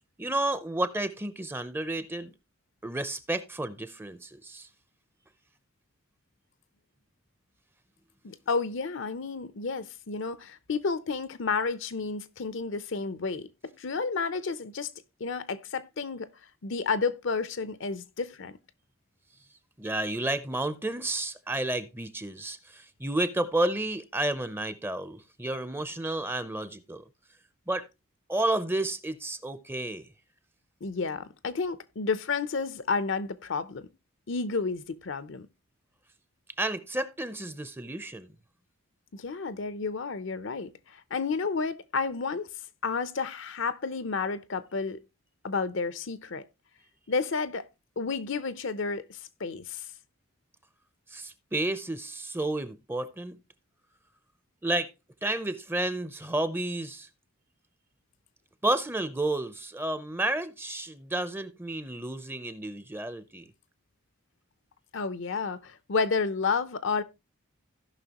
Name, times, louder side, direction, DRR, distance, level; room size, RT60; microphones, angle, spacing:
voice 1, 0.2-2.3 2.8-4.7 19.8-27.0 27.7-27.9 28.3-30.1 36.6-38.3 51.1-53.4 54.6-54.9 55.2-57.1 58.6-63.5, right 1 dB, 10° right, 0.6 m, -31 dB
voice 2, 8.2-14.9 15.2-16.3 16.6-18.5 30.8-33.9 34.3-35.5 39.1-42.5 42.8-45.0 45.4-46.4 47.1-47.6 48.0-49.8 64.9-67.0, left 4 dB, 60° left, 0.6 m, -31 dB
16.5 x 5.8 x 2.9 m
head